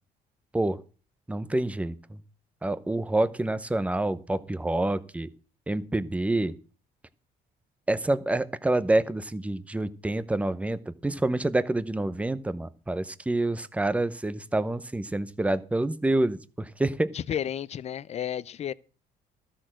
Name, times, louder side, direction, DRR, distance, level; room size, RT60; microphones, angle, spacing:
voice 1, 1.3-2.2 2.6-5.3 5.7-6.5 7.9-17.1, right 2 dB, 10° right, 0.7 m, -27 dB
voice 2, 17.1-18.7, left 9 dB, 40° left, 0.5 m, -32 dB
13.0 x 6.3 x 7.6 m
cardioid pair, 110°, 17 cm